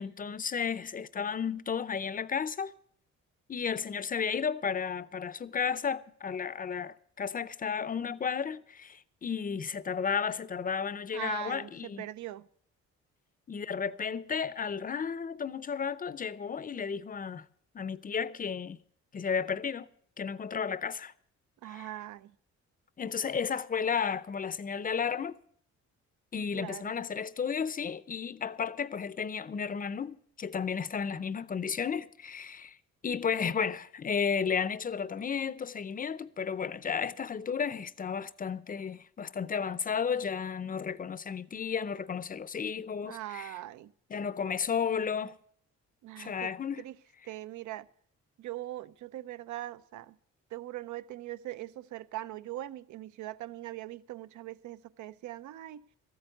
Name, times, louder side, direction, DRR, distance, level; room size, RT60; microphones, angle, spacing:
voice 1, 0.0-2.7 3.5-12.0 13.5-17.5 17.7-18.8 19.1-19.9 20.2-21.1 21.7-21.9 23.0-25.4 26.3-32.8 33.0-43.5 44.1-45.4 46.2-46.8, left 6 dB, 30° left, 0.6 m, -33 dB
voice 2, 11.1-12.5 21.6-22.3 26.5-27.0 43.0-43.9 46.0-46.5 46.8-47.0 47.2-47.9 48.4-50.1 50.5-55.8, right 15 dB, 75° right, 0.6 m, -41 dB
13.5 x 8.7 x 7.8 m
cardioid pair, 90°, 30 cm